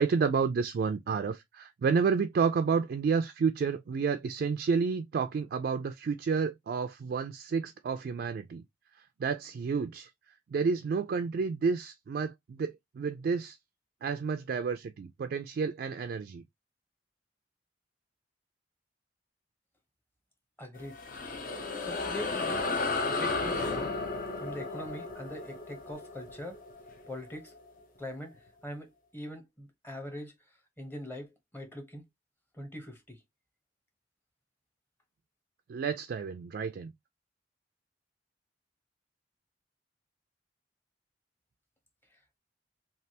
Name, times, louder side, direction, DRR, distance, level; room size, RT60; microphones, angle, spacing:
voice 1, 0.0-8.6 9.2-10.1 10.5-13.6 14.0-16.4 35.7-36.9, right 5 dB, 60° right, 0.3 m, -30 dB
voice 2, 20.6-21.0 21.8-22.6 23.1-23.9 24.4-26.6 27.1-27.5 28.0-28.4 28.6-30.3 30.8-32.0 32.6-33.2, left 1 dB, 10° left, 0.8 m, -42 dB
sound 1, 20.7-27.6, left 3 dB, 50° left, 0.7 m, -34 dB
3.2 x 2.4 x 2.7 m
head